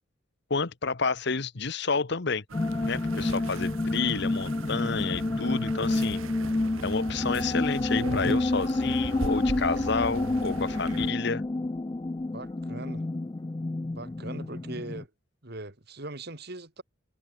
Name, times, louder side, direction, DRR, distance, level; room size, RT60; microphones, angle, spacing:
voice 1, 0.5-2.4 2.9-6.2 6.8-11.4, left 4 dB, 55° left, 1.0 m, -30 dB
sound 1, 2.5-15.0, left 2 dB, 20° left, 0.4 m, -29 dB
sound 2, 2.5-11.1, right 3 dB, 85° right, 1.0 m, -38 dB
voice 2, 12.3-13.0 13.9-15.1 15.4-16.8, right 2 dB, 50° right, 2.5 m, -40 dB
head